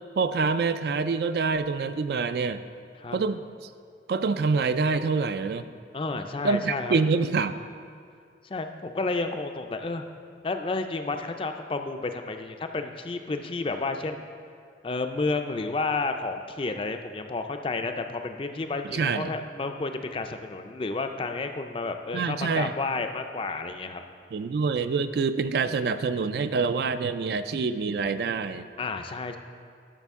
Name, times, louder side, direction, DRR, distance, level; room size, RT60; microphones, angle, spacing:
voice 1, 0.2-2.6 3.1-3.4 4.1-5.6 6.4-7.6 18.9-19.3 22.1-22.7 24.3-28.7, right 4 dB, 60° right, 11 dB, 0.3 m, -26 dB
voice 2, 5.9-6.9 8.4-10.1 10.4-14.3 14.8-24.0 28.8-29.4, left 3 dB, 30° left, 6 dB, 0.4 m, -31 dB
12.5 x 6.0 x 3.6 m, 2.3 s
head